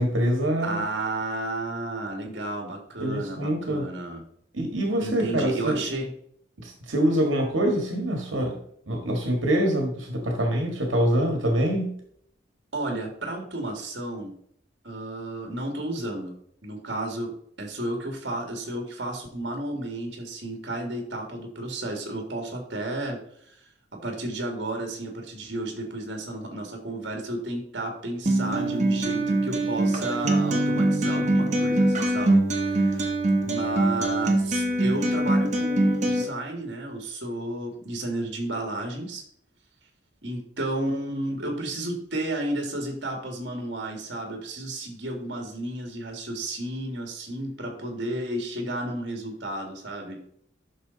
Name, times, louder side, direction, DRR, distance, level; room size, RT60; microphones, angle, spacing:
voice 1, 0.0-0.8 3.0-3.9 4.5-5.8 6.6-8.6 8.9-11.9, right 1 dB, 85° right, 2 dB, 1.8 m, -25 dB
voice 2, 0.6-4.2 5.0-6.1 12.7-14.3 14.8-16.3 16.6-17.3 17.6-23.2 23.5-23.6 23.9-33.1 33.4-39.2 40.2-50.2, right 1 dB, 65° right, 2 dB, 2.2 m, -32 dB
Acoustic guitar, 28.3-36.2, right 1 dB, 40° right, 1.3 m, -23 dB
10.0 x 6.5 x 4.1 m, 0.68 s
head